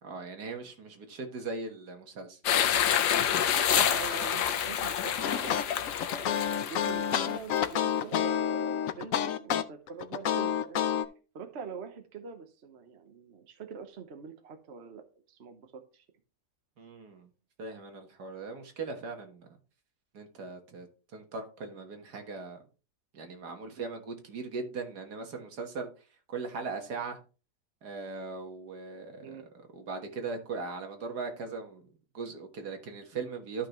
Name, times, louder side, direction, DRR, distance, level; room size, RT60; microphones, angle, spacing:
voice 1, 0.0-2.4 16.8-17.3 17.6-19.5 20.1-20.9 21.1-22.6 23.1-25.9 26.3-27.2 27.8-29.4 29.7-31.9 32.1-33.7, right 4 dB, 75° right, 2.0 m, -39 dB
sound 1, 2.4-7.7, left 9 dB, 85° left, 1.4 m, -28 dB
voice 2, 3.5-5.7 6.1-10.8 11.3-16.0 29.2-29.4, right 6 dB, 45° right, 1.2 m, -44 dB
sound 2, 5.2-11.0, left 9 dB, 65° left, 1.0 m, -29 dB
12.5 x 5.7 x 3.0 m
omnidirectional pair, 1.7 m